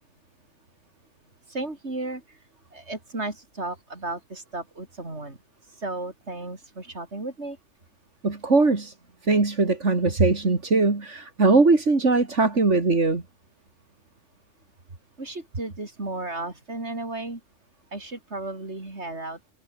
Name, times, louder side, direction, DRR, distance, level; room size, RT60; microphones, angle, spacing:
voice 1, 1.5-2.4 2.7-5.4 5.8-7.6 15.2-17.4 17.9-19.4, right 2 dB, 70° right, 4.9 m, -34 dB
voice 2, 8.2-8.9 9.2-13.2, right 3 dB, 85° right, 3.5 m, -20 dB
omnidirectional pair, 1.2 m